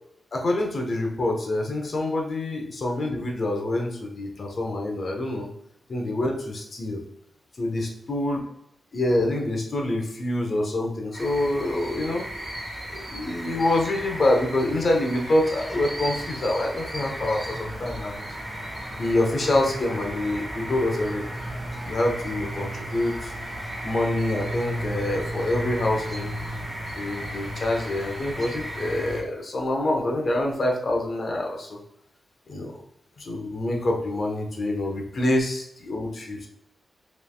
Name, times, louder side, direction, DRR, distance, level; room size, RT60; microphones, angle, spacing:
voice 1, 0.3-5.5 5.9-7.0 7.6-8.4 8.9-12.3 12.9-18.2 18.9-21.6 21.8-23.3 23.8-26.3 27.0-31.8 32.5-32.8 33.2-36.5, left 1 dB, 50° left, 1 dB, 0.9 m, -26 dB
sound 1, 11.1-29.2, right 1 dB, 10° right, 1.6 m, -34 dB
5.5 x 3.3 x 2.4 m, 0.75 s
wide cardioid pair, 115°, 0 cm